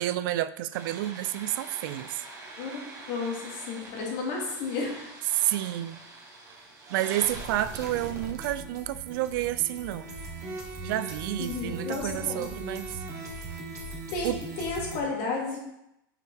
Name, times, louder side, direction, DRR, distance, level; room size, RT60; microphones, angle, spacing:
voice 1, 0.0-2.2 5.3-6.0 6.9-10.1 10.8-13.0 14.2-14.4, right 14 dB, 65° right, 14 dB, 0.4 m, -30 dB
sound 1, 0.7-15.0, right 2 dB, 25° right, 1.5 m, -41 dB
voice 2, 3.1-5.1 11.4-12.5 14.1-15.6, left 4 dB, 55° left, -2 dB, 2.2 m, -32 dB
5.9 x 5.7 x 3.4 m, 0.84 s
supercardioid pair, 130°, 12 cm